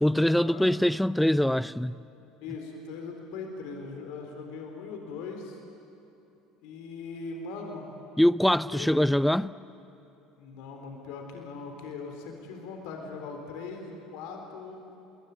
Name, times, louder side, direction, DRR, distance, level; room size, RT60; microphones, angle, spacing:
voice 1, 0.0-2.0 8.2-9.5, left 1 dB, 5° left, 0.6 m, -23 dB
voice 2, 2.4-5.6 6.6-7.9 8.7-8.9 10.4-14.8, left 4 dB, 60° left, 3.9 m, -40 dB
28.5 x 21.0 x 9.3 m
figure-of-eight pair, 65°, 0 cm